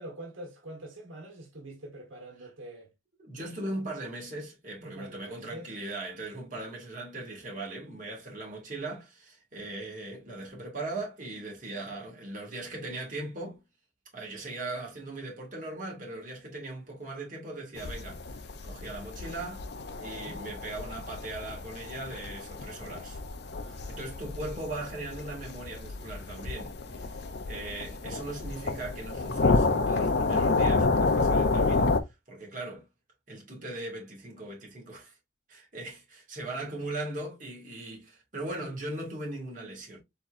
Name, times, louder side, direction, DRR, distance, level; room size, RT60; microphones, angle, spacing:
voice 1, 0.0-2.9 4.8-5.7 19.8-20.4 23.5-24.0 27.1-27.4, right 1 dB, 80° right, 1.4 m, -45 dB
voice 2, 3.2-13.6 14.1-19.7 20.0-23.2 23.9-32.9 33.3-35.1 35.5-40.0, right 2 dB, 40° right, 2.1 m, -39 dB
sound 1, 17.8-32.0, left 3 dB, 55° left, 0.6 m, -29 dB
4.5 x 4.3 x 2.5 m
head